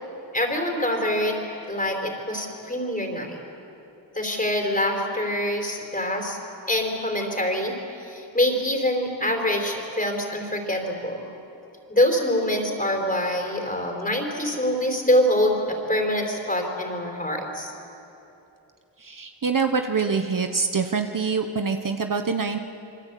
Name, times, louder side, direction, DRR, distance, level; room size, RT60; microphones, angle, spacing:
voice 1, 0.3-3.4 4.1-6.4 6.7-7.7 8.0-11.2 11.9-17.7, left 1 dB, 20° left, 2 dB, 4.4 m, -25 dB
voice 2, 19.0-22.6, right 5 dB, 45° right, 6 dB, 1.2 m, -25 dB
27.5 x 25.0 x 8.5 m, 2.8 s
wide cardioid pair, 125°, 45 cm